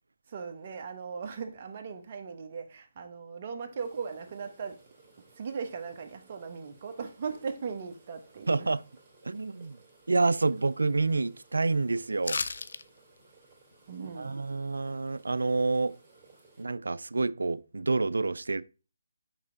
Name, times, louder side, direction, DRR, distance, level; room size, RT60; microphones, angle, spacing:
voice 1, 0.3-4.8 5.3-8.7 13.9-14.4, right 5 dB, 40° right, 1.1 m, -38 dB
sound 1, 3.8-16.6, right 3 dB, 20° right, 2.8 m, -60 dB
voice 2, 8.5-8.8 9.2-9.8 10.1-12.4 14.2-16.0 16.6-18.6, right 3 dB, 80° right, 0.4 m, -28 dB
sound 2, 12.2-12.8 13.2-13.3, left 4 dB, 70° left, 0.5 m, -32 dB
6.0 x 4.4 x 3.8 m
figure-of-eight pair, 155°, 0 cm